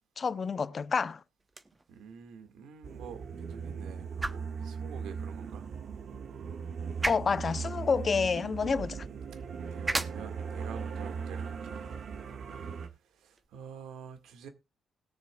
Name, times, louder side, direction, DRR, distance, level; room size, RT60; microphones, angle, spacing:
voice 1, 0.2-1.2 7.1-9.0, left 5 dB, 40° left, 0.6 m, -29 dB
sound 1, 1.4-13.5, right 2 dB, 20° right, 0.9 m, -42 dB
voice 2, 1.9-5.7 9.7-11.8 13.1-14.5, right 7 dB, 85° right, 1.8 m, -47 dB
sound 2, 2.8-12.9, right 6 dB, 60° right, 1.6 m, -38 dB
20.5 x 6.9 x 2.3 m
cardioid pair, 90°, 0 cm